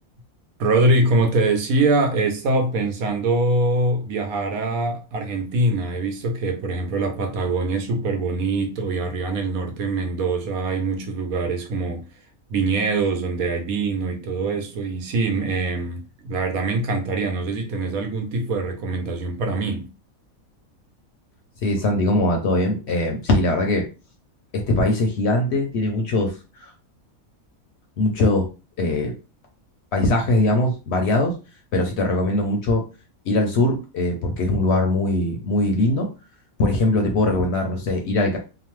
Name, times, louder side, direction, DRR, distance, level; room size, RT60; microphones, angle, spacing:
voice 1, 0.6-12.0 12.5-19.9, right 2 dB, 80° right, 1.1 m, -23 dB
voice 2, 21.6-23.8 24.5-26.7 28.0-28.5 28.8-29.1 29.9-31.4 31.7-32.9 33.3-36.1 36.6-38.4, left 2 dB, 65° left, 0.7 m, -21 dB
2.9 x 2.0 x 3.0 m
omnidirectional pair, 1.5 m